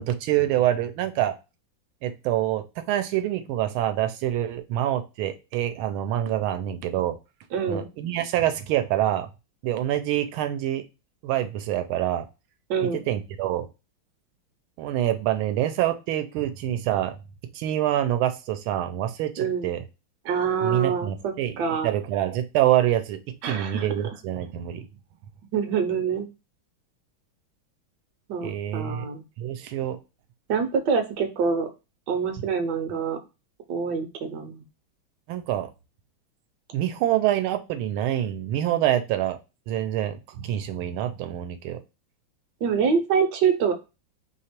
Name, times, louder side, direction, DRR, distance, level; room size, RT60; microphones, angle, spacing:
voice 1, 0.0-1.3 2.0-7.2 7.7-9.3 9.6-10.8 11.2-12.2 13.1-13.7 14.8-17.2 17.5-19.8 20.6-21.5 21.8-24.8 28.4-29.0 29.4-30.0 35.3-35.7 36.7-39.4 39.7-41.8, right 12 dB, 85° right, 8 dB, 1.4 m, -26 dB
voice 2, 7.5-7.9 12.7-13.0 19.4-19.7 20.2-21.9 23.4-23.9 25.5-26.3 28.3-29.2 30.5-31.7 32.1-33.2 33.7-34.6 42.6-43.7, right 6 dB, 70° right, 7 dB, 1.2 m, -25 dB
3.4 x 2.8 x 4.3 m, 0.28 s
omnidirectional pair, 2.2 m